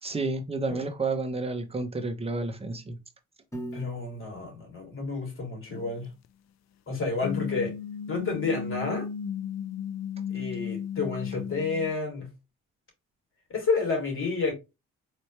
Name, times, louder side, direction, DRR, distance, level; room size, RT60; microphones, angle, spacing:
voice 1, 0.0-3.0, right 3 dB, 20° right, 1.0 m, -30 dB
Piano, 3.5-5.7, right 1 dB, 10° left, 1.5 m, -43 dB
voice 2, 3.7-6.1 6.9-7.7 8.1-9.1 10.3-12.3 13.5-14.5, left 4 dB, 45° left, 2.9 m, -30 dB
sound 1, 5.7-5.9 7.2-11.9, left 7 dB, 65° left, 0.5 m, -35 dB
4.2 x 3.2 x 3.2 m
cardioid pair, 90°, 30 cm